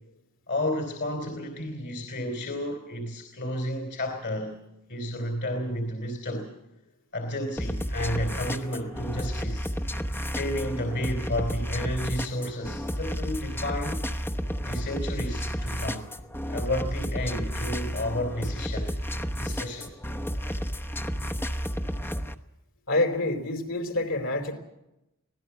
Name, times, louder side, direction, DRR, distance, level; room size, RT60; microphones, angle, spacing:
voice 1, 0.5-4.6 4.9-6.5 7.1-9.7 10.3-14.1 14.6-16.1 16.5-18.9 19.3-19.9, left 1 dB, 55° left, 4 dB, 3.0 m, -31 dB
sound 1, 7.6-22.3, equal, 10° left, 1.0 m, -32 dB
voice 2, 22.9-24.5, left 2 dB, 70° left, 5 dB, 4.5 m, -27 dB
24.5 x 18.0 x 7.1 m, 0.90 s
head